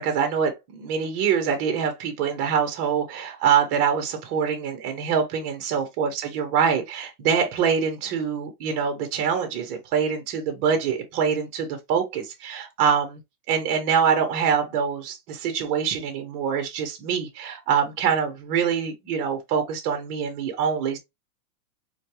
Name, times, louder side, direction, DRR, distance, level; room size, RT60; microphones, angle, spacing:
voice 1, 0.0-13.2 13.5-21.0, right 7 dB, 40° right, 1.2 m, -24 dB
4.4 x 2.3 x 3.0 m
supercardioid pair, 155°, 44 cm